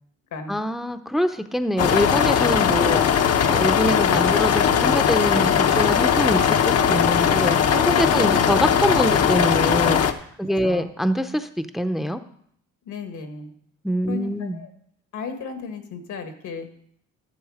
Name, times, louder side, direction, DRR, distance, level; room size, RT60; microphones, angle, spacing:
voice 1, 0.5-3.1 3.5-12.2 13.8-14.6, equal, ahead, 9 dB, 0.7 m, -25 dB
sound 1, 1.8-10.1, left 8 dB, 55° left, 0.9 m, -19 dB
voice 2, 8.1-8.5 10.4-10.9 12.9-13.5 14.1-14.7 15.1-16.7, left 5 dB, 75° left, 6 dB, 1.8 m, -35 dB
13.0 x 7.1 x 4.9 m, 0.67 s
cardioid pair, 90°, 30 cm